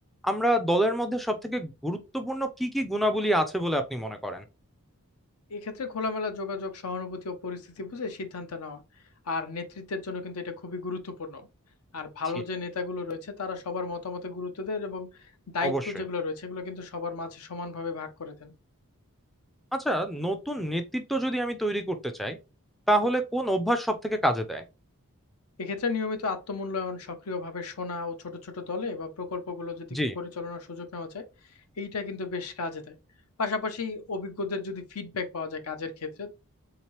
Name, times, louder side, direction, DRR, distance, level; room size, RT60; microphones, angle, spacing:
voice 1, 0.2-4.4 15.6-15.9 19.7-22.4 22.9-24.6 29.9-30.1, right 1 dB, ahead, 0.3 m, -27 dB
voice 2, 5.5-8.8 9.3-11.5 11.9-18.5 25.6-31.3 31.8-32.9 33.4-36.3, left 4 dB, 75° left, 0.7 m, -34 dB
3.5 x 2.9 x 3.0 m
head